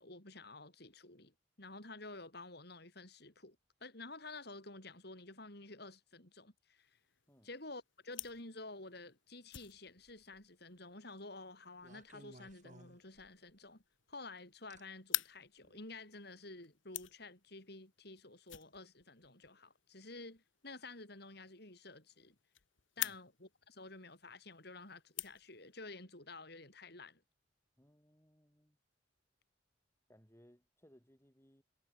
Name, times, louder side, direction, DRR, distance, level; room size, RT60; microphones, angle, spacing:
voice 1, 0.0-3.6 3.8-6.9 7.4-13.8 14.1-22.4 23.0-27.2, left 2 dB, 55° left, 6.3 m, -51 dB
sound 1, 6.8-25.9, left 15 dB, 85° left, 1.5 m, -49 dB
sound 2, 10.0-10.4 11.8-13.6 14.7-14.8 15.6-15.8, right 1 dB, 40° right, 7.7 m, -59 dB
voice 2, 27.8-28.8 30.1-31.6, equal, 15° left, 6.5 m, -65 dB
head